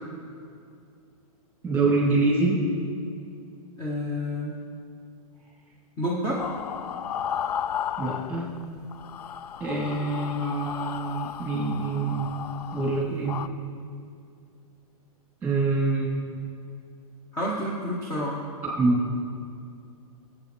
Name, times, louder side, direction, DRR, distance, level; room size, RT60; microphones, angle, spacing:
voice 1, 1.6-2.6 8.0-8.5 9.6-12.3 12.7-13.4 15.4-16.2 18.8-19.0, right 3 dB, 5° right, -5 dB, 3.2 m, -25 dB
voice 2, 3.8-4.6 6.0-6.5 17.3-18.4, equal, 15° left, -3 dB, 1.0 m, -29 dB
sound 1, 6.4-8.6 8.9-13.5, left 9 dB, 90° left, 0.4 m, -34 dB
17.5 x 8.6 x 3.3 m, 2.4 s
hypercardioid pair, 145°, 19 cm